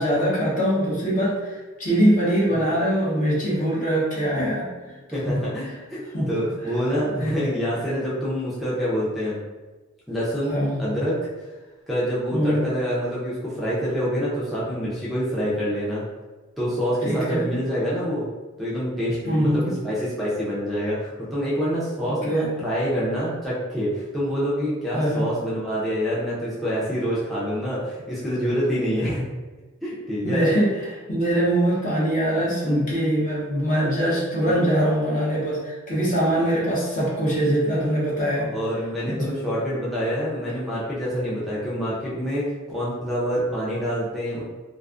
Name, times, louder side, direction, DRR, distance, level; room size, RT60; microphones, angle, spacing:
voice 1, 0.0-4.6 5.3-5.4 6.1-6.3 7.1-7.4 10.5-10.8 12.3-12.6 17.0-17.5 19.3-19.7 22.1-22.5 24.9-25.3 30.2-38.5 39.1-39.3, right 1 dB, 40° left, -5 dB, 0.8 m, -23 dB
voice 2, 3.5-3.8 4.4-4.5 5.1-6.0 6.3-9.4 10.1-11.1 11.9-16.0 16.6-18.3 18.6-29.2 29.8-30.5 32.4-32.7 34.5-34.9 38.4-44.4, equal, ahead, -9 dB, 0.5 m, -26 dB
2.4 x 2.4 x 2.4 m, 1.2 s
head